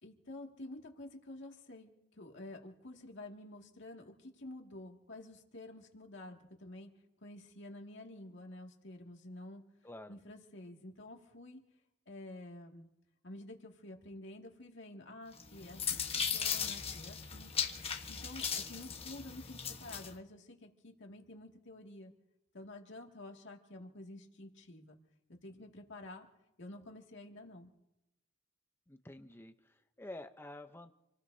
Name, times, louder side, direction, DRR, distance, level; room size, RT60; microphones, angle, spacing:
voice 1, 0.0-6.9 7.2-9.6 10.1-11.6 12.1-12.9 13.2-17.5 18.1-22.1 22.5-25.0 25.4-26.3 26.6-27.7, left 1 dB, 60° left, 1 dB, 2.2 m, -50 dB
voice 2, 9.8-10.1 28.9-30.9, left 1 dB, 10° left, 7 dB, 0.7 m, -49 dB
sound 1, 15.4-20.1, left 7 dB, 30° left, 1.3 m, -37 dB
28.0 x 18.5 x 2.8 m, 0.95 s
head